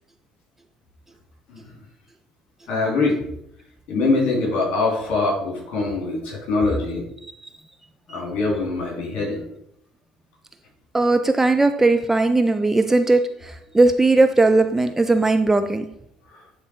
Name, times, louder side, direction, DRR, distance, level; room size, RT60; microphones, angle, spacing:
voice 1, 2.7-3.2 3.9-7.0 8.1-9.4 16.3-16.4, left 3 dB, 50° left, -2 dB, 3.4 m, -23 dB
voice 2, 10.9-15.8, right 2 dB, 10° right, 7 dB, 0.4 m, -18 dB
9.7 x 3.9 x 4.7 m, 0.75 s
figure-of-eight pair, 55°, 3 cm